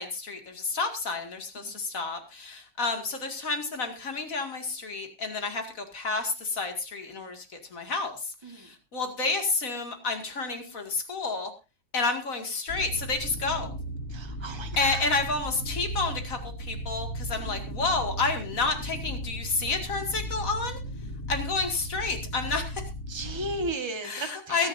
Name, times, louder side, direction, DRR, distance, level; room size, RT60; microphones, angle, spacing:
voice 1, 0.0-11.5 11.9-13.7 14.8-20.8 21.3-22.9 24.0-24.7, left 3 dB, 60° left, 5 dB, 2.6 m, -30 dB
sound 1, 12.7-23.7, right 1 dB, 85° left, 3.2 m, -36 dB
voice 2, 14.1-15.0 23.1-24.7, right 2 dB, 20° right, 5 dB, 1.5 m, -35 dB
22.5 x 10.5 x 2.6 m, 0.28 s
omnidirectional pair, 1.6 m